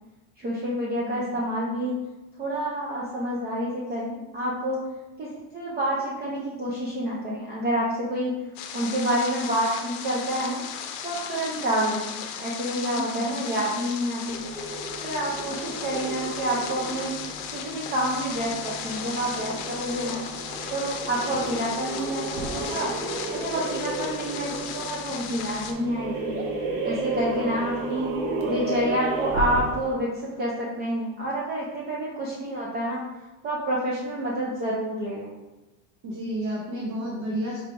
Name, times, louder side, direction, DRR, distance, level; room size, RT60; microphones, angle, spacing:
voice 1, 0.4-1.9 2.4-4.8 5.2-8.3 8.7-10.6 11.0-14.5 15.0-17.2 17.5-20.2 20.7-22.9 23.3-26.3 26.8-28.1 28.4-33.0 33.4-35.3, right 1 dB, 25° right, -5 dB, 0.4 m, -28 dB
voice 2, 0.9-1.4 12.9-13.3 27.4-27.5 36.0-37.6, right 1 dB, 45° right, -4 dB, 0.8 m, -32 dB
sound 1, 8.6-25.7, left 7 dB, 80° left, 0.6 m, -36 dB
sound 2, 14.2-29.9, right 2 dB, 80° right, 0.9 m, -33 dB
4.6 x 3.2 x 2.5 m, 1.1 s
cardioid pair, 160°, 42 cm